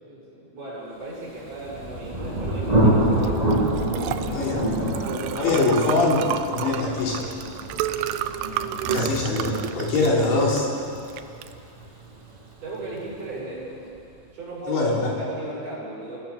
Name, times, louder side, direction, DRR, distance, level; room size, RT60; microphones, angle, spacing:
voice 1, 0.0-3.4 4.2-4.5 4.8-5.8 12.6-13.9 14.3-14.9 15.2-16.2, right 2 dB, 40° right, -6 dB, 8.2 m, -36 dB
Thunder, 1.4-12.9, right 1 dB, 10° right, 2.0 m, -27 dB
Liquid, 3.2-13.4, right 12 dB, 80° right, 3.2 m, -32 dB
voice 2, 4.3-4.6 5.4-7.2 8.9-10.7 14.7-15.1, left 3 dB, 65° left, -2 dB, 5.2 m, -23 dB
29.5 x 17.0 x 7.0 m, 2.6 s
omnidirectional pair, 5.8 m